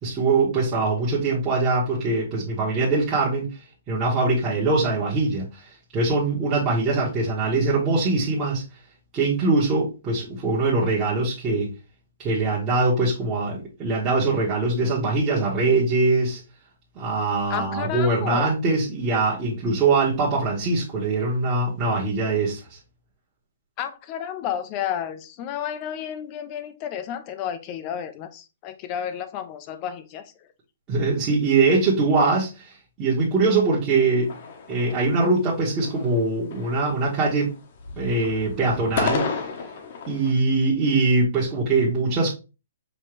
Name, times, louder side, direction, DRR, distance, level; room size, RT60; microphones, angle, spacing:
voice 1, 0.0-3.5 3.9-5.6 5.9-8.6 9.1-11.8 12.2-16.4 16.9-22.8 30.9-32.7 33.0-34.3 34.7-37.5 38.0-39.3 40.1-42.3, right 3 dB, 20° right, 1.3 m, -22 dB
voice 2, 17.5-18.5 23.8-30.3, left 9 dB, 30° left, 0.5 m, -31 dB
sound 1, 34.2-35.4 35.8-36.3 36.5-37.5 37.8-40.3, left 5 dB, 50° left, 1.0 m, -32 dB
5.4 x 2.8 x 3.2 m
hypercardioid pair, 155°, 0 cm